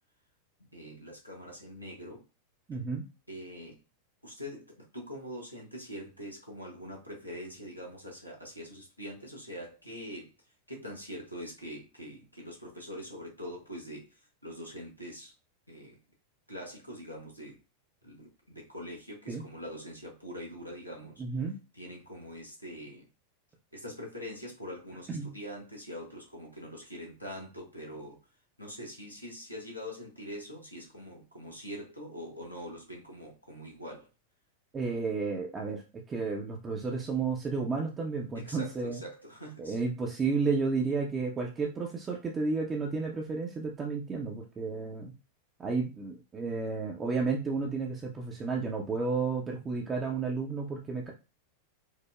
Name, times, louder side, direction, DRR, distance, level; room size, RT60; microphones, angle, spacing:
voice 1, 0.6-2.2 3.3-3.8 4.2-10.3 10.7-15.3 15.7-16.0 16.5-17.6 18.0-21.2 21.7-23.1 23.7-28.2 28.6-34.1 38.3-39.8, equal, 90° left, -1 dB, 1.0 m, -43 dB
voice 2, 2.7-3.0 19.3-19.4 21.2-21.6 25.1-25.3 34.7-35.8 36.1-39.0 39.6-45.1 45.6-51.1, right 4 dB, 20° right, 0 dB, 0.6 m, -32 dB
4.8 x 2.0 x 2.3 m, 0.30 s
figure-of-eight pair, 90°, 0 cm